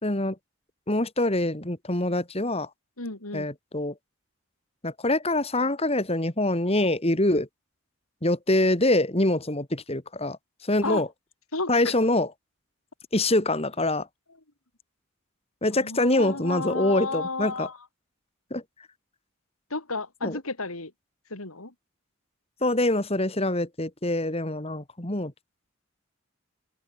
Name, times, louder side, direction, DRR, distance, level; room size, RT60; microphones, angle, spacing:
voice 1, 0.0-0.4 0.9-2.7 3.3-3.9 4.8-7.5 8.2-11.1 11.7-12.3 13.1-14.1 15.6-17.7 18.5-18.6 20.2-20.4 22.6-25.3, left 1 dB, 30° left, 2.7 m, -25 dB
voice 2, 3.0-3.5 10.8-11.0 11.5-12.0 15.8-17.8 19.7-20.9 21.3-21.7, left 3 dB, 85° left, 4.1 m, -32 dB
head